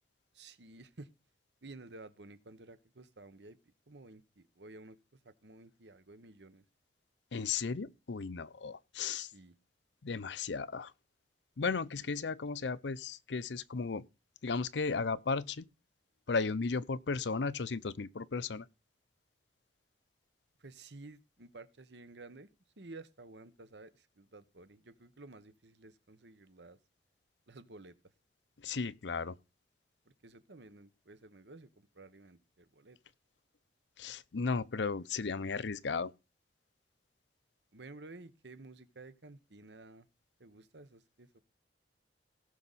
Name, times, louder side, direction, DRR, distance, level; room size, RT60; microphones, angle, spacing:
voice 1, 0.3-1.1 1.6-6.6 9.1-9.5 11.9-12.1 20.6-22.5 22.8-26.8 27.5-27.9 30.0-33.0 37.7-40.1 40.4-41.4, right 2 dB, 75° right, 1.1 m, -53 dB
voice 2, 7.3-9.3 10.0-10.9 11.6-14.0 14.4-15.6 16.3-18.7 28.6-29.4 34.0-36.1, left 4 dB, 85° left, 0.6 m, -35 dB
17.5 x 6.5 x 4.2 m
head